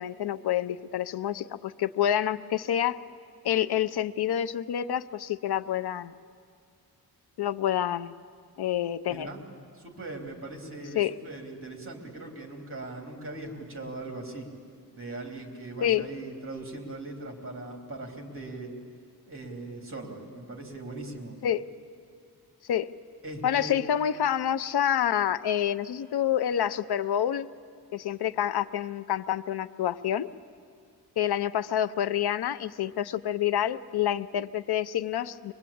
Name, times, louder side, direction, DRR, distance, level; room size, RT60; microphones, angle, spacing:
voice 1, 0.0-3.0 3.4-6.1 7.4-8.1 8.6-9.3 10.9-11.1 15.8-16.1 21.4-21.6 22.7-22.9 23.4-27.5 27.9-30.3 31.2-35.5, left 10 dB, 75° left, 14 dB, 0.6 m, -28 dB
voice 2, 9.1-9.4 9.7-14.5 14.9-18.7 19.3-21.4 23.2-23.8, right 2 dB, 35° right, 2 dB, 3.1 m, -40 dB
23.5 x 22.0 x 8.6 m, 2.2 s
wide cardioid pair, 180°, 39 cm